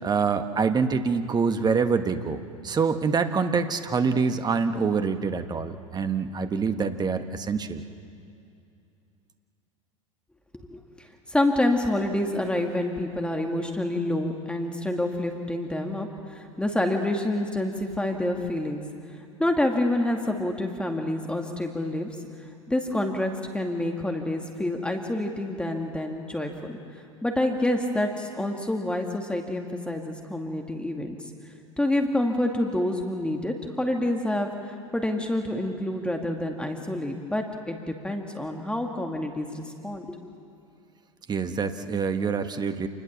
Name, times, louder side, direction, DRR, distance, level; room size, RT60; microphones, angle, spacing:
voice 1, 0.0-7.8 41.3-42.9, right 5 dB, 25° right, 8 dB, 1.5 m, -25 dB
voice 2, 10.5-18.8 19.4-22.1 22.7-26.8 27.2-31.2 31.8-40.2, left 1 dB, 5° left, 3 dB, 2.2 m, -28 dB
28.0 x 21.0 x 7.3 m, 2.6 s
hypercardioid pair, 80°, 17 cm